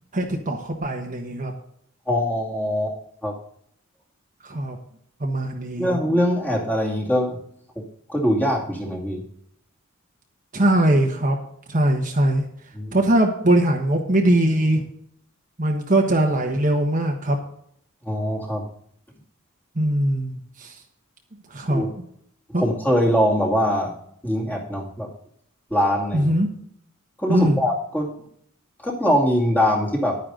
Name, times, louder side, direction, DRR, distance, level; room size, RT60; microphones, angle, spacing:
voice 1, 0.1-1.5 4.4-4.8 5.2-6.0 10.5-11.4 11.7-12.4 12.9-14.8 15.6-17.4 19.7-20.8 21.5-21.8 22.5-22.6 26.1-26.5 27.3-27.6, right 1 dB, 35° right, 1 dB, 1.3 m, -21 dB
voice 2, 2.1-3.3 5.8-7.4 7.8-7.9 8.1-9.2 12.7-13.0 18.0-18.6 21.7-21.9 22.6-23.9 24.2-25.1 25.7-26.3 27.2-28.1 28.8-30.2, equal, 10° left, -2 dB, 2.4 m, -22 dB
11.0 x 10.0 x 3.9 m, 0.67 s
head